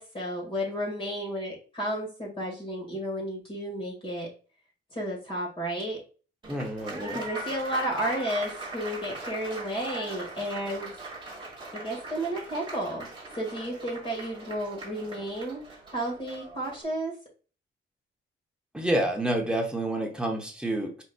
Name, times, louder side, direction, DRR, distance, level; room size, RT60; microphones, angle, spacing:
voice 1, 0.0-4.3 4.9-6.0 7.0-10.9 11.7-13.1 13.4-15.6 15.9-17.2, equal, 25° left, -1 dB, 2.0 m, -32 dB
Applause, 6.4-16.8, right 2 dB, 25° right, 1.3 m, -40 dB
voice 2, 6.5-7.2 18.7-21.0, right 1 dB, 5° right, 0 dB, 0.8 m, -28 dB
4.8 x 4.0 x 2.3 m, 0.37 s
wide cardioid pair, 175°, 21 cm